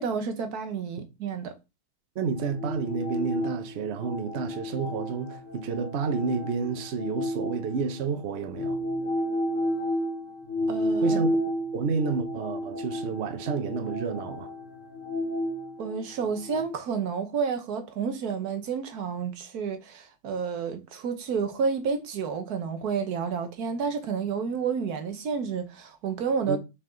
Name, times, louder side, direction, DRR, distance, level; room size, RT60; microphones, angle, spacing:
voice 1, 0.0-1.5 10.7-11.2 15.8-26.6, right 6 dB, 55° right, 1.3 m, -30 dB
voice 2, 2.1-8.8 11.0-11.4 11.7-14.5 26.5-26.6, right 5 dB, 75° right, 0.6 m, -30 dB
sound 1, 2.2-8.0 8.5-16.6, equal, 25° left, 2.6 m, -32 dB
6.0 x 4.7 x 3.8 m
omnidirectional pair, 2.3 m